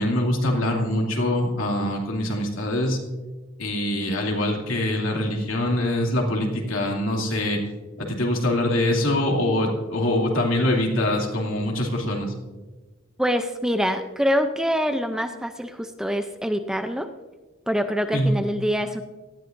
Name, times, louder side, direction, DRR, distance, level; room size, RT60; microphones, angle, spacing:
voice 1, 0.0-3.0 3.6-7.6 8.0-12.3 18.1-18.3, left 1 dB, 75° left, -1 dB, 2.7 m, -24 dB
voice 2, 13.2-17.1 17.7-19.0, equal, 5° right, 7 dB, 0.5 m, -25 dB
18.0 x 13.0 x 2.6 m, 1.2 s
head